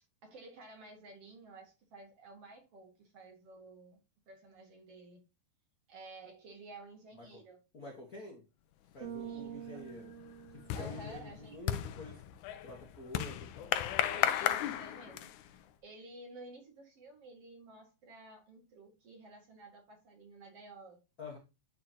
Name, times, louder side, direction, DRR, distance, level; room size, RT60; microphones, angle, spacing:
voice 1, 0.2-4.0 4.3-5.2 5.9-7.6 9.2-9.8 10.7-11.6 14.1-15.2 15.8-21.0, right 2 dB, 50° right, 2.2 m, -52 dB
voice 2, 7.7-8.4 8.9-10.1 10.5-12.2 12.6-13.8 21.2-21.4, left 2 dB, 60° left, 0.9 m, -48 dB
Bass guitar, 9.0-11.3, right 10 dB, 85° right, 2.9 m, -46 dB
sound 1, 9.1-9.4 9.8-15.6, left 12 dB, 85° left, 1.7 m, -35 dB
11.0 x 4.5 x 2.8 m
omnidirectional pair, 4.2 m